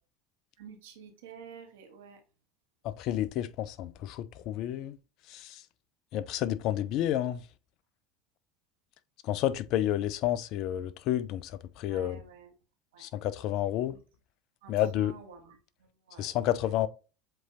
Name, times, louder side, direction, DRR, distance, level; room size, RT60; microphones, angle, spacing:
voice 1, 0.6-2.2 11.9-12.5 12.9-13.1 13.9-14.0 14.6-16.7, right 7 dB, 70° right, 1.2 m, -51 dB
voice 2, 2.8-5.0 5.3-5.6 6.1-7.4 9.2-11.5 11.8-12.2 13.0-14.0 14.7-15.2 16.2-16.9, left 12 dB, 55° left, 0.4 m, -30 dB
7.6 x 2.7 x 2.5 m
hypercardioid pair, 75°, 0 cm